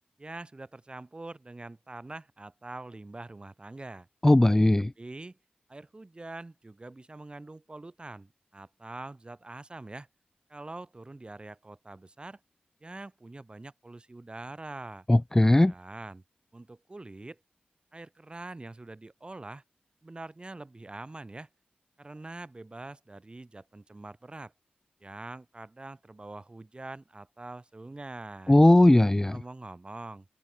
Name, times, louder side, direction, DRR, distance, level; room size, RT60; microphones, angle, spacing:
voice 1, 0.2-4.1 5.0-5.4 5.7-10.1 10.5-12.4 12.8-15.1 15.7-16.2 16.5-17.4 17.9-19.6 20.0-21.5 22.0-24.5 25.0-28.6 29.3-30.3, right 2 dB, 30° right, 4.8 m, -44 dB
voice 2, 4.2-4.9 15.1-15.7 28.5-29.4, left 1 dB, 15° left, 0.5 m, -19 dB
open air
wide cardioid pair, 70°, 3 cm